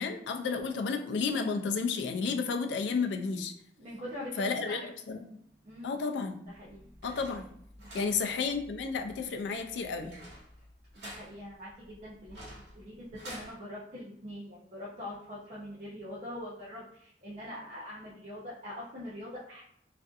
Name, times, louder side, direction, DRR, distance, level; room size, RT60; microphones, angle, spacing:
voice 1, 0.0-3.5 4.4-4.8 5.1-5.2 5.8-6.4 7.0-7.5 7.9-10.1, left 5 dB, 80° left, 5 dB, 0.4 m, -32 dB
voice 2, 3.8-4.9 5.6-6.2 6.5-6.9 7.8-8.2 10.9-12.4 12.7-19.6, left 1 dB, 40° right, -7 dB, 0.5 m, -43 dB
sound 1, 6.5-13.5, equal, 85° right, 0.9 m, -50 dB
2.5 x 2.5 x 2.3 m, 0.69 s
head